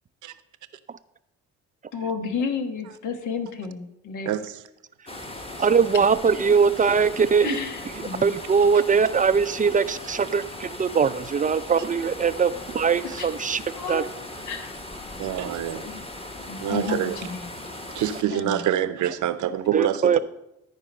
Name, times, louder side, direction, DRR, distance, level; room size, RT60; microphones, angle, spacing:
voice 1, 1.9-4.3 7.4-8.4 13.2-13.3 13.7-14.1 14.5-14.7 15.9-16.1 16.5-17.5 18.1-18.6, left 5 dB, 80° left, 1.3 m, -32 dB
voice 2, 4.3-4.6 15.2-15.9 16.6-17.2 17.9-20.2, right 11 dB, 75° right, 0.7 m, -26 dB
sound 1, 5.1-18.2, left 1 dB, 20° left, 1.2 m, -38 dB
voice 3, 5.6-7.6 8.2-13.6 13.9-14.0 16.9-17.0 19.7-20.2, right 6 dB, 30° right, 0.3 m, -21 dB
13.0 x 4.7 x 5.3 m
cardioid pair, 90°, 30 cm